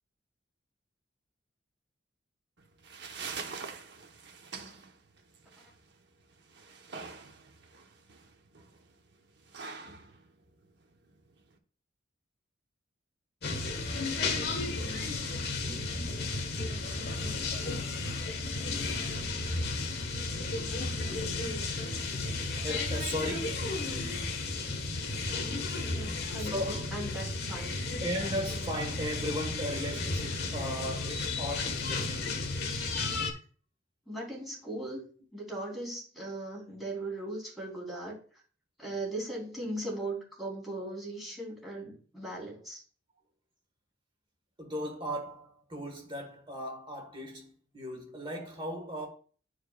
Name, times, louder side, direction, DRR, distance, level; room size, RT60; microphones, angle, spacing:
sound 1, 2.6-11.6, right 5 dB, 60° right, 1.0 m, -45 dB
sound 2, 13.4-33.3, left 3 dB, 55° left, 1.4 m, -33 dB
voice 1, 22.6-23.8 26.3-26.9 28.0-32.3 35.7-35.9 44.6-49.1, equal, 25° right, 1.5 m, -37 dB
voice 2, 25.8-27.8 34.1-35.0 35.3-38.2 38.8-42.8, right 1 dB, ahead, 3.4 m, -38 dB
12.0 x 4.9 x 2.4 m
head